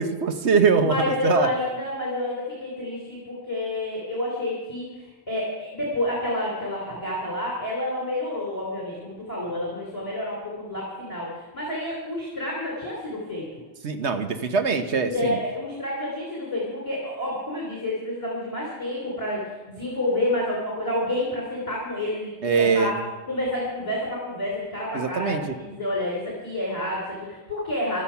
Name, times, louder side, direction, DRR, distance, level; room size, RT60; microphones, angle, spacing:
voice 1, 0.0-1.5 13.8-15.4 22.4-23.0 24.9-25.4, right 5 dB, 90° right, 8 dB, 1.4 m, -22 dB
voice 2, 0.8-13.5 15.0-22.9 23.3-28.0, left 1 dB, 30° left, -4 dB, 3.5 m, -29 dB
15.0 x 12.5 x 5.8 m, 1.2 s
omnidirectional pair, 1.1 m